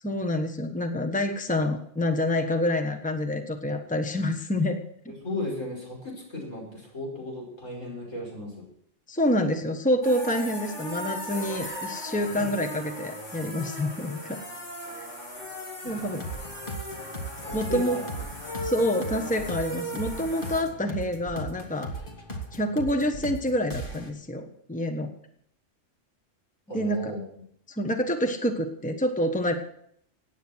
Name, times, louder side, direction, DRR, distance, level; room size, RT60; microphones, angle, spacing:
voice 1, 0.0-4.8 5.0-5.1 9.1-14.4 15.0-15.1 15.8-16.2 17.5-18.0 18.6-21.9 22.5-25.1 26.7-27.1 27.8-29.5, left 1 dB, 5° left, 6 dB, 1.2 m, -27 dB
voice 2, 5.1-8.7 15.8-16.1 17.5-18.0 26.7-27.3, left 2 dB, 85° left, -1 dB, 6.0 m, -35 dB
sound 1, 10.0-20.6, equal, 70° left, 4.6 m, -38 dB
sound 2, 15.9-24.1, right 1 dB, 45° left, 2.1 m, -38 dB
17.5 x 9.1 x 6.2 m, 0.68 s
omnidirectional pair, 1.3 m